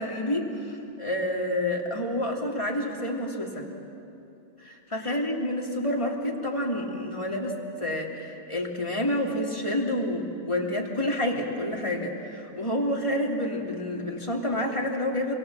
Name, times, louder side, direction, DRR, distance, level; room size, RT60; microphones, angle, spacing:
voice 1, 0.0-3.7 4.6-15.3, left 1 dB, 25° left, -2 dB, 3.1 m, -29 dB
28.5 x 23.0 x 7.6 m, 2.8 s
omnidirectional pair, 1.2 m